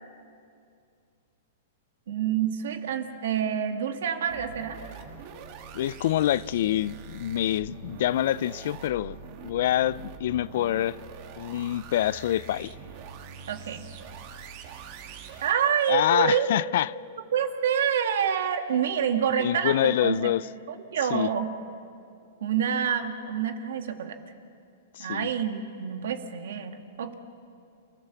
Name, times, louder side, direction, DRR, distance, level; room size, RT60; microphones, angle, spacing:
voice 1, 2.1-4.8 13.5-13.9 15.4-16.5 17.3-20.3 20.7-21.5 22.4-24.2 25.0-27.1, right 8 dB, 75° right, 1.9 m, -27 dB
sound 1, 4.3-15.5, right 6 dB, 50° right, 2.4 m, -44 dB
voice 2, 5.7-9.2 9.4-11.0 11.4-12.7 15.9-16.9 19.4-20.5 21.1-21.3 24.9-25.3, left 12 dB, 65° left, 0.4 m, -26 dB
28.5 x 16.0 x 7.1 m
hypercardioid pair, 140°, 0 cm